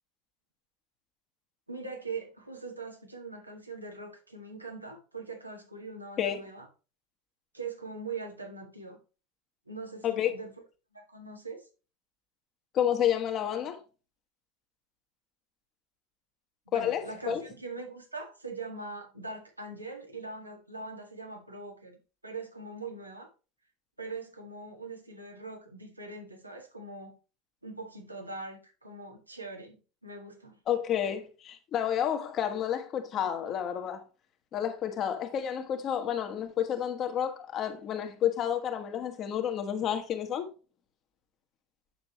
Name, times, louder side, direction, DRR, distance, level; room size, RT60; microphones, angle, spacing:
voice 1, 1.7-6.7 7.5-9.0 9.7-10.5 10.9-11.6 16.7-21.9 22.2-23.3 24.0-27.1 27.6-30.6, right 3 dB, 90° right, 1.7 m, -42 dB
voice 2, 12.7-13.8 16.7-17.4 30.7-34.0 34.5-40.5, left 9 dB, 40° left, 1.5 m, -30 dB
8.9 x 6.7 x 3.0 m
figure-of-eight pair, 75°, 0 cm